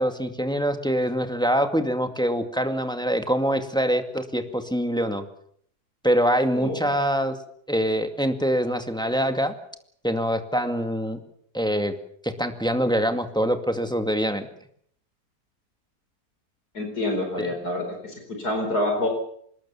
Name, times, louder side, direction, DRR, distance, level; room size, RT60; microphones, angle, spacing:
voice 1, 0.0-5.3 6.0-7.4 7.7-9.5 10.0-11.2 11.5-11.9 12.2-14.5 17.4-17.5, equal, 5° left, 7 dB, 2.1 m, -24 dB
voice 2, 16.7-19.1, left 1 dB, 75° left, 3 dB, 5.1 m, -27 dB
26.5 x 20.5 x 7.2 m, 0.65 s
omnidirectional pair, 1.7 m